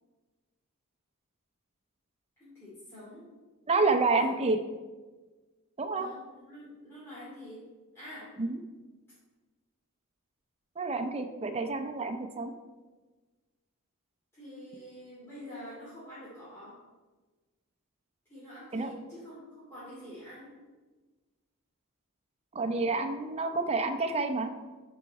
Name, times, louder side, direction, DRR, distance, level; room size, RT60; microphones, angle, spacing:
voice 1, 2.4-3.3 4.2-4.4 5.9-7.7 7.9-8.4 14.3-16.8 18.3-20.5, equal, 10° left, -12 dB, 2.7 m, -47 dB
voice 2, 3.7-4.6 5.8-6.1 8.4-8.6 10.8-12.5 18.7-18.9 22.5-24.5, right 3 dB, 30° right, 6 dB, 0.6 m, -28 dB
10.0 x 4.6 x 4.2 m, 1.3 s
head